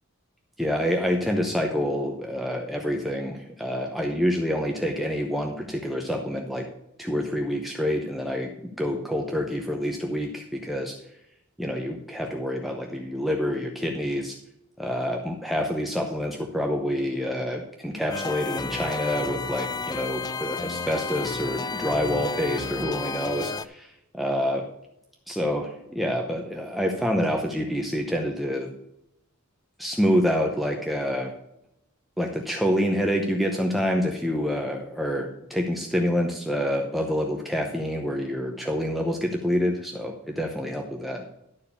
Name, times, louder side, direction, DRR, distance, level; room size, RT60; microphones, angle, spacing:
voice 1, 0.6-6.7 7.0-8.5 8.8-11.0 11.6-14.4 14.8-24.7 25.3-28.7 29.8-31.3 32.2-41.2, equal, ahead, 1 dB, 0.8 m, -27 dB
sound 1, 18.1-23.6, left 4 dB, 20° left, 0.4 m, -32 dB
12.0 x 4.6 x 6.9 m, 0.82 s
head